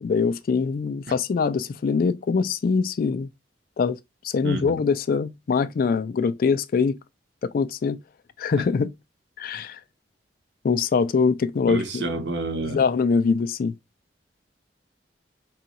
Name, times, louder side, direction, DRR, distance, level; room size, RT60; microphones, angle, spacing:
voice 1, 0.0-3.3 3.8-4.0 4.2-7.0 7.4-8.0 8.4-8.9 9.4-9.8 10.6-12.1 12.6-13.7, left 5 dB, 55° left, 0.3 m, -23 dB
voice 2, 4.4-4.8 11.6-12.8, right 2 dB, 85° right, 0.9 m, -29 dB
3.7 x 2.3 x 4.1 m
head